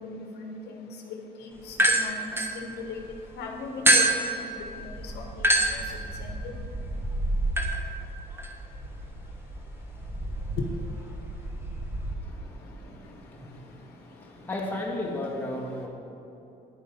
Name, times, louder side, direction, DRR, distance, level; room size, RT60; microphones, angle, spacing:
voice 1, 0.0-3.0 3.3-4.1 4.3-5.8 6.2-6.5 10.6-10.7, left 4 dB, 75° left, 2 dB, 1.3 m, -38 dB
sound 1, 1.7-3.2 3.9-12.1, right 1 dB, 15° right, 1.2 m, -28 dB
voice 2, 14.5-15.9, left 1 dB, 10° left, -3 dB, 2.1 m, -31 dB
9.9 x 8.4 x 5.4 m, 3.0 s
cardioid pair, 110°, 17 cm